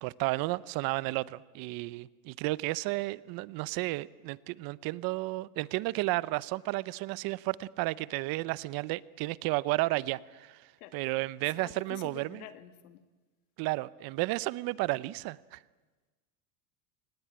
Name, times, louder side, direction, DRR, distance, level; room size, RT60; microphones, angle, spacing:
voice 1, 0.0-10.7 10.9-12.4 13.6-15.6, right 20 dB, 50° right, 19 dB, 0.8 m, -32 dB
voice 2, 11.5-13.0, left 12 dB, 90° left, 10 dB, 2.0 m, -48 dB
27.0 x 19.0 x 8.8 m, 1.3 s
supercardioid pair, 135°, 44 cm